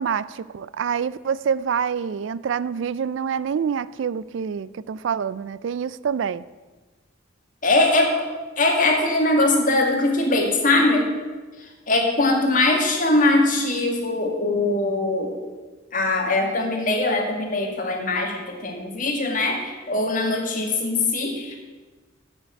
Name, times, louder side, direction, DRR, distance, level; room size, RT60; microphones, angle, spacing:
voice 1, 0.0-6.4, right 7 dB, 70° right, 18 dB, 0.3 m, -26 dB
voice 2, 7.6-8.2 8.6-11.1 11.9-15.3 15.9-21.6, left 2 dB, 45° left, 1 dB, 2.0 m, -21 dB
8.6 x 6.5 x 8.4 m, 1.3 s
head